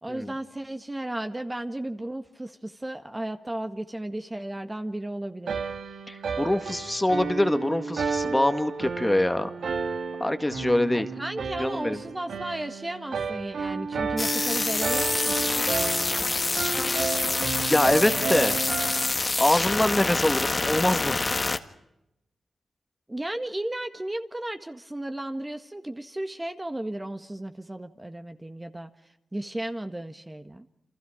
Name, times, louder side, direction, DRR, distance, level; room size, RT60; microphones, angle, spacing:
voice 1, 0.0-5.6 10.9-15.5 23.1-28.9 29.3-30.7, right 1 dB, 15° right, 7 dB, 1.6 m, -34 dB
sound 1, 5.5-19.1, right 5 dB, 70° right, 1.9 m, -32 dB
voice 2, 6.1-9.5 10.2-11.1 11.6-12.0 17.6-18.6 19.4-21.3, left 1 dB, 10° left, 8 dB, 1.9 m, -24 dB
sound 2, 14.2-21.6, left 3 dB, 35° left, 1.7 m, -26 dB
29.5 x 27.0 x 5.1 m, 0.85 s
cardioid pair, 70°, 0 cm